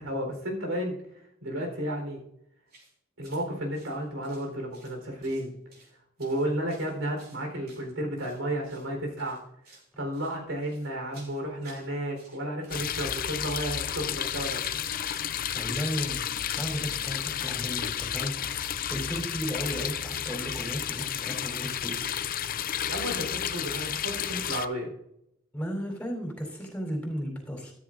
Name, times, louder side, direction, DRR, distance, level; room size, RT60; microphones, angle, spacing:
voice 1, 0.0-2.2 3.2-5.5 6.2-9.4 10.0-14.6 22.9-24.9, right 1 dB, 75° right, 2 dB, 4.0 m, -32 dB
sound 1, 2.7-2.9 3.2-3.4 3.7-5.0 5.2-5.9 6.2-8.4 8.7-8.9 9.2-9.9 10.1-11.9 12.1-12.9 13.1-22.4, right 3 dB, 50° right, 4.1 m, -55 dB
sound 2, 12.7-24.7, left 9 dB, 45° left, 0.5 m, -32 dB
voice 2, 15.2-22.2 25.5-27.7, equal, 5° left, 0 dB, 3.9 m, -35 dB
13.5 x 13.0 x 2.6 m, 0.77 s
head